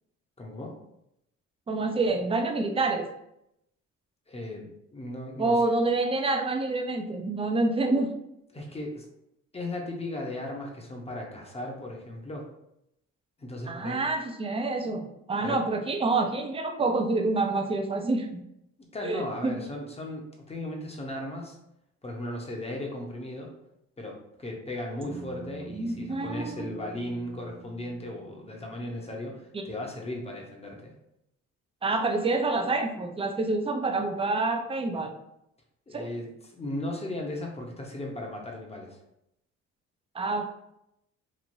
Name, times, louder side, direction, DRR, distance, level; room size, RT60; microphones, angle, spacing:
voice 1, 0.4-0.7 4.3-5.7 8.5-9.0 9.5-12.5 13.4-14.1 15.4-15.6 18.8-21.6 22.0-23.5 24.0-30.9 35.9-39.0, left 1 dB, 20° left, 0 dB, 0.7 m, -36 dB
voice 2, 1.7-3.1 5.4-8.1 13.7-18.4 19.0-19.6 25.7-26.7 29.5-29.6 31.8-35.1 35.9-36.1 40.1-40.6, right 3 dB, 20° right, 5 dB, 0.4 m, -27 dB
Bass guitar, 25.0-29.3, right 3 dB, 45° right, 1.1 m, -46 dB
3.1 x 2.5 x 2.6 m, 0.80 s
cardioid pair, 90°, 30 cm